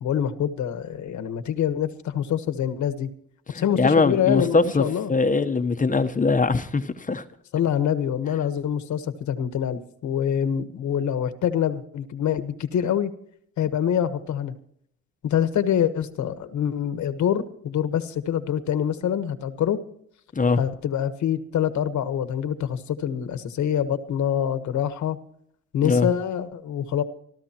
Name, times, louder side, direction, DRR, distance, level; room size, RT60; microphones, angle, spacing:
voice 1, 0.0-3.1 3.5-5.1 7.5-13.1 13.6-14.5 15.2-19.8 20.6-25.2 25.7-27.0, left 9 dB, 70° left, 1.4 m, -25 dB
voice 2, 3.5-4.8 5.1-7.2 20.3-20.6 25.8-26.1, left 4 dB, 25° left, 1.0 m, -21 dB
25.5 x 13.5 x 3.0 m
cardioid pair, 90°, 30 cm